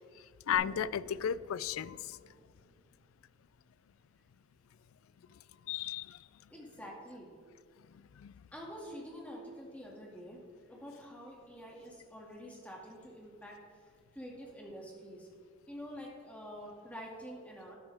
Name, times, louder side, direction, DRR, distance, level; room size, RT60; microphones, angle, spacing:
voice 1, 0.5-2.2 5.7-6.2 8.2-8.3, left 9 dB, 85° left, 19 dB, 0.3 m, -34 dB
sound 1, 0.5-4.0, equal, 30° right, 2.5 m, -54 dB
voice 2, 6.5-7.3 8.5-10.4 10.6-15.3 15.7-17.8, equal, 5° left, -2 dB, 2.1 m, -47 dB
13.0 x 10.5 x 3.5 m, 2.1 s
head